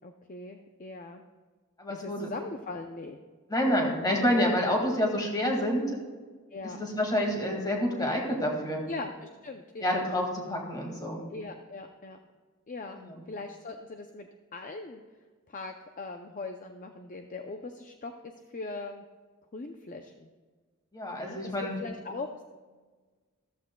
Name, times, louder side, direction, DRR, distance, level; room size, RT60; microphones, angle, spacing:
voice 1, 0.0-1.2 1.9-3.2 6.5-6.8 8.9-10.0 11.3-12.2 12.7-13.0 13.3-15.0 15.5-18.1 18.5-19.0 19.5-20.3 21.2-21.4 21.8-22.4, left 3 dB, 35° left, 5 dB, 0.5 m, -40 dB
voice 2, 1.8-2.3 3.5-5.9 6.6-8.8 9.8-11.2 13.0-13.2 20.9-21.7, left 1 dB, 20° left, 0 dB, 2.0 m, -28 dB
14.5 x 13.5 x 2.3 m, 1.4 s
head